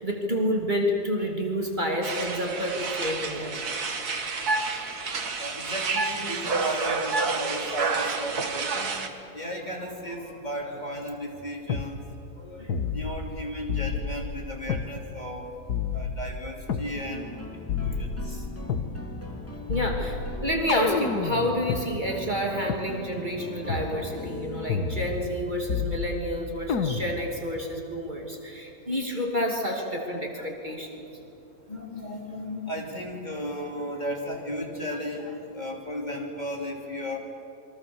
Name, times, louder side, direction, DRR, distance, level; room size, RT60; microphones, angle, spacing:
voice 1, 0.0-3.5 19.7-31.1, equal, 30° right, 0 dB, 2.8 m, -29 dB
sound 1, 2.0-9.1, right 4 dB, 70° right, 2.3 m, -29 dB
voice 2, 5.4-8.9 9.3-12.0 12.4-15.4 15.9-18.4 30.1-30.5 31.7-37.2, equal, 25° left, 0 dB, 3.2 m, -35 dB
sound 2, 11.7-11.9 12.7-13.4 13.7-14.9 15.7-16.9 17.7-18.9 19.7-21.8 22.7-22.8 23.7-23.9 24.7-25.4 25.7-26.3 26.7-27.3, left 6 dB, 80° left, 1.8 m, -30 dB
sound 3, 16.9-25.1, left 2 dB, 10° left, 3.1 m, -41 dB
27.5 x 23.5 x 7.1 m, 2.9 s
omnidirectional pair, 1.7 m